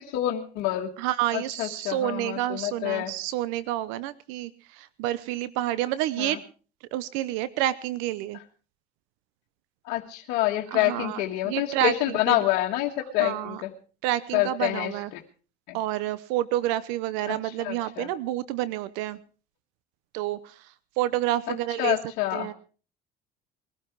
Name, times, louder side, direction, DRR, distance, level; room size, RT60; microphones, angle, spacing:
voice 1, 0.1-0.9 1.3-3.1 6.2-6.4 9.8-13.7 14.3-15.2 15.7-15.8 17.3-17.4 17.6-18.1 21.5-22.5, left 15 dB, 75° left, -2 dB, 1.7 m, -27 dB
voice 2, 1.0-6.4 6.9-8.4 10.7-12.4 13.2-13.6 14.0-15.1 15.7-19.2 20.1-22.0 22.3-22.5, right 14 dB, 85° right, 17 dB, 0.8 m, -29 dB
21.5 x 12.5 x 4.7 m, 0.40 s
cardioid pair, 110°, 20 cm